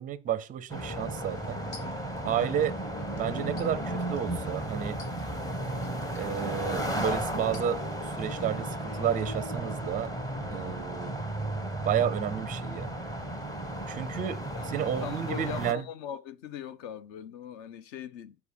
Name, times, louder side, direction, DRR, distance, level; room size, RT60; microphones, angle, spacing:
voice 1, 0.0-1.6 2.2-2.7 3.2-5.0 6.2-10.1 10.5-11.1 11.8-12.9 13.9-15.8, right 9 dB, 20° right, 0.5 m, -31 dB
sound 1, 0.7-15.7, right 1 dB, 10° left, 0.8 m, -34 dB
sound 2, 1.3-9.5, left 3 dB, 80° left, 3.0 m, -50 dB
voice 2, 2.2-2.6 14.5-18.4, left 9 dB, 50° left, 0.9 m, -41 dB
6.8 x 4.9 x 5.0 m
supercardioid pair, 120°, 46 cm